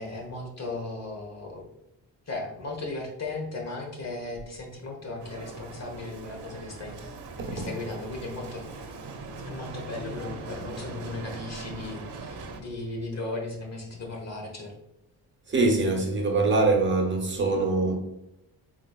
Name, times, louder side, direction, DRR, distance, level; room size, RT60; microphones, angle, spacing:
voice 1, 0.0-1.7 2.3-6.9 7.5-8.6 9.5-14.7, left 2 dB, 35° left, 1.2 m, -36 dB
Bicycle, 5.2-12.6, right 3 dB, 65° right, 0.8 m, -40 dB
voice 2, 15.5-17.9, right 3 dB, 25° right, 1.1 m, -23 dB
3.9 x 3.3 x 2.4 m
cardioid pair, 80°, 43 cm